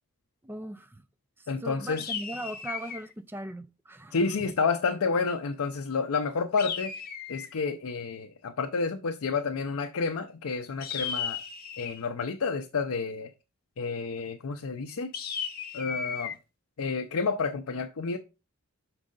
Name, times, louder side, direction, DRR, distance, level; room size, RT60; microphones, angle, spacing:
voice 1, 0.4-1.0 1.4-4.2, right 1 dB, 10° right, 0.3 m, -39 dB
voice 2, 1.5-2.1 4.1-6.9 7.3-11.4 11.8-13.3 13.8-15.1 15.7-16.4 16.8-18.2, left 4 dB, 75° left, 0.5 m, -30 dB
sound 1, 2.0-3.1 6.6-7.6 10.8-12.1 15.1-16.4, left 7 dB, 45° left, 0.9 m, -35 dB
6.3 x 4.7 x 3.7 m
head